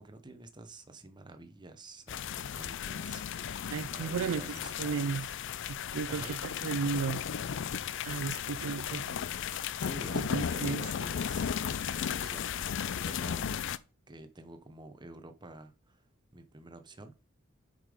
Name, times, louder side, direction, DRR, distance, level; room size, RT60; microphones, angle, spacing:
voice 1, 0.0-5.4 6.1-6.4 9.7-13.5 14.1-16.1 16.3-17.1, right 2 dB, 20° right, 0.8 m, -49 dB
sound 1, 2.1-13.8, left 8 dB, 60° left, 0.4 m, -35 dB
voice 2, 3.7-4.4 4.8-5.3 5.7-7.2 8.0-9.2 10.1-10.8, right 6 dB, 85° right, 0.4 m, -34 dB
7.3 x 5.2 x 5.0 m
head